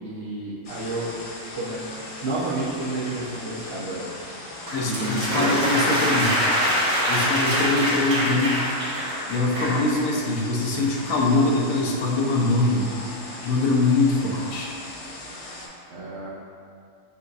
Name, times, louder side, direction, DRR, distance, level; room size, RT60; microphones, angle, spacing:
voice 1, 0.0-1.1 1.5-1.9 2.2-4.0 4.8-5.5 15.9-16.3, right 2 dB, 60° right, -8 dB, 0.9 m, -30 dB
sound 1, 0.6-15.7, left 1 dB, 50° left, 0.4 m, -39 dB
voice 2, 4.7-6.3 7.1-8.6 9.3-12.9 13.4-14.7, left 2 dB, 75° left, -1 dB, 1.1 m, -23 dB
sound 2, 4.7-9.8, equal, 85° right, 1.8 m, -24 dB
6.7 x 2.6 x 2.4 m, 2.3 s
omnidirectional pair, 1.4 m